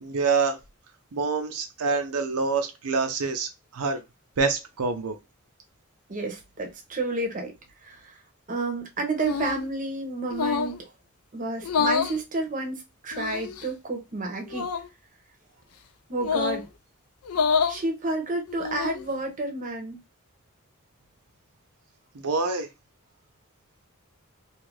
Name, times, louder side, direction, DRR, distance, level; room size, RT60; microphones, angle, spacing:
voice 1, 0.0-0.6 1.1-4.0 4.4-5.2 22.1-22.7, right 4 dB, 90° right, 0.6 m, -26 dB
voice 2, 6.1-7.5 7.8-8.2 8.5-10.9 11.3-14.7 16.1-16.7 17.7-20.0, right 2 dB, 35° right, 0.7 m, -30 dB
sound 1, 9.2-9.7 10.3-10.8 11.6-12.2 13.1-13.7 14.5-14.9 16.2-16.7 17.3-17.8 18.5-19.1, left 6 dB, 80° left, 0.4 m, -27 dB
2.7 x 2.4 x 3.1 m
head